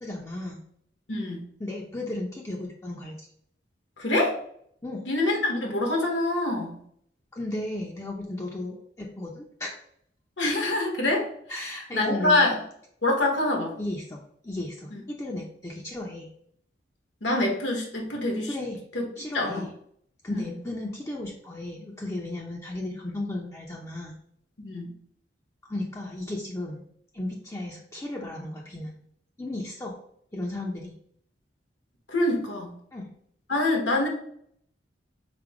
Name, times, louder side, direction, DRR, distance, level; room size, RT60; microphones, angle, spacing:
voice 1, 0.0-0.6 1.6-3.3 4.8-5.0 7.3-9.7 11.5-12.5 13.8-16.3 18.5-18.8 19.2-19.7 20.2-24.2 25.6-26.9 27.1-28.9 29.4-30.0 30.3-30.9 32.9-33.1, left 1 dB, 15° left, -2 dB, 0.5 m, -34 dB
voice 2, 1.1-1.4 4.0-4.4 5.1-6.8 10.4-11.3 11.5-12.5 13.0-13.7 17.2-18.5 19.3-19.7 20.3-20.5 24.6-24.9 32.1-32.7 33.5-34.1, left 2 dB, 80° left, 1 dB, 1.3 m, -25 dB
5.0 x 2.1 x 4.7 m, 0.66 s
head